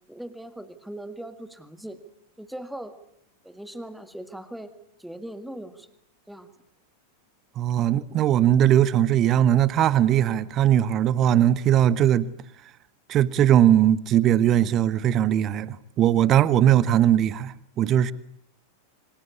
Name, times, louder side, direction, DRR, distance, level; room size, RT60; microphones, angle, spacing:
voice 1, 0.1-2.0 2.4-2.9 3.4-4.7 5.0-5.9 6.3-6.5, right 1 dB, ahead, 1.9 m, -39 dB
voice 2, 7.6-12.3 13.1-18.1, right 11 dB, 30° right, 1.1 m, -20 dB
28.0 x 25.5 x 8.4 m
figure-of-eight pair, 90°, 0 cm